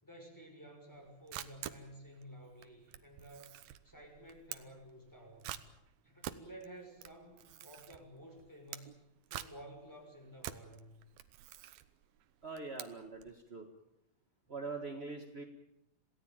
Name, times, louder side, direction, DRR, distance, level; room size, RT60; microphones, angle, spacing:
voice 1, 0.0-3.6 3.8-5.5 6.0-9.0 9.3-11.0, right 1 dB, 5° left, 2 dB, 6.3 m, -53 dB
Camera, 0.9-13.4, right 12 dB, 85° right, 2.9 m, -48 dB
voice 2, 12.4-13.7 14.5-15.4, right 3 dB, 35° right, 4 dB, 1.0 m, -43 dB
27.5 x 17.0 x 9.1 m, 0.81 s
omnidirectional pair, 4.1 m